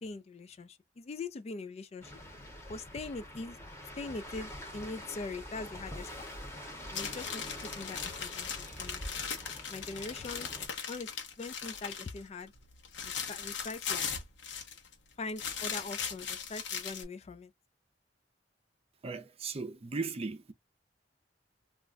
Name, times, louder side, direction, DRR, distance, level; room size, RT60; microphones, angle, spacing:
voice 1, 0.0-2.1 2.7-3.6 4.0-6.3 6.9-7.4 7.8-9.0 9.7-10.5 10.9-11.1 11.4-12.5 13.0-14.1 15.2-17.5, left 3 dB, 35° left, 0.3 m, -42 dB
sound 1, 2.0-10.7, equal, 15° left, 0.8 m, -45 dB
sound 2, 6.9-12.2 12.5-14.9 15.3-17.0, left 7 dB, 85° left, 0.8 m, -38 dB
voice 2, 19.0-20.5, right 4 dB, 35° right, 0.5 m, -37 dB
2.4 x 2.1 x 3.6 m
head